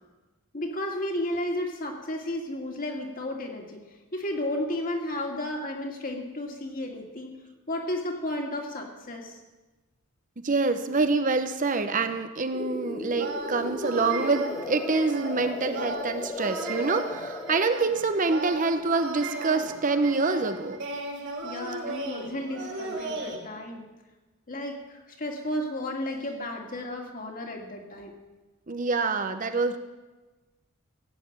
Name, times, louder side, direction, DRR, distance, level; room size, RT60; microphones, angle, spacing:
voice 1, 0.5-3.8 4.1-7.3 7.7-9.4 21.4-23.9 24.5-28.1, left 1 dB, 40° left, 1 dB, 2.4 m, -33 dB
voice 2, 10.4-20.8 28.7-29.8, right 3 dB, 35° right, 9 dB, 0.8 m, -26 dB
sound 1, 12.5-17.7, left 2 dB, 15° left, 0.4 m, -36 dB
sound 2, 13.1-23.4, right 2 dB, 55° right, 3.0 m, -36 dB
16.0 x 8.3 x 8.8 m, 1.2 s
head